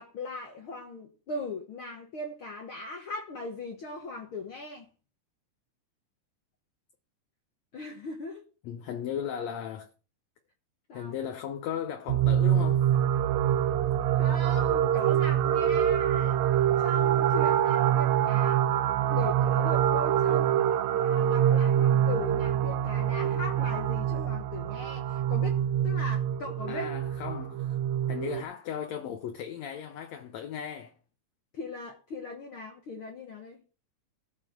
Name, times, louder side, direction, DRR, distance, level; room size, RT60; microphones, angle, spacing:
voice 1, 0.0-4.9 7.7-8.4 10.9-11.1 14.2-16.4 16.8-18.7 19.1-26.9 31.5-33.6, left 3 dB, 55° left, 1.7 m, -39 dB
voice 2, 8.6-9.9 10.9-12.9 26.7-27.8 28.1-30.9, left 8 dB, 70° left, 1.9 m, -36 dB
sound 1, 12.1-28.4, right 10 dB, 75° right, 1.9 m, -25 dB
13.5 x 5.5 x 6.5 m
omnidirectional pair, 3.7 m